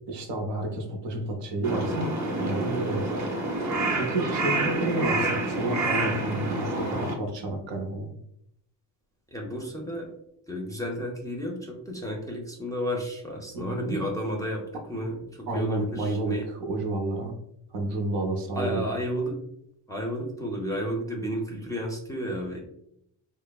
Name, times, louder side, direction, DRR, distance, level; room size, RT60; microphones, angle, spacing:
voice 1, 0.1-2.1 2.4-3.1 3.9-8.1 13.5-14.0 15.5-17.3 17.7-18.9, right 2 dB, 75° right, 2 dB, 0.7 m, -30 dB
Crow, 1.6-7.1, right 2 dB, 40° right, 0.7 m, -28 dB
voice 2, 9.3-10.1 10.5-16.5 18.6-19.4 19.9-22.6, equal, 10° left, -2 dB, 0.4 m, -32 dB
3.2 x 2.0 x 2.2 m, 0.76 s
cardioid pair, 100°, 44 cm